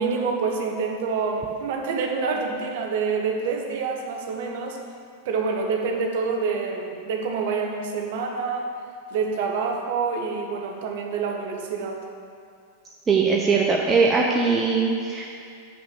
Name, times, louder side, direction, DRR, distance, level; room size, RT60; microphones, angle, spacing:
voice 1, 0.0-4.8 5.2-8.7 9.1-12.0, right 5 dB, 55° right, 2 dB, 1.2 m, -27 dB
voice 2, 13.1-15.3, right 4 dB, 20° right, -1 dB, 0.8 m, -21 dB
7.2 x 5.8 x 7.6 m, 2.3 s
figure-of-eight pair, 90°, 0 cm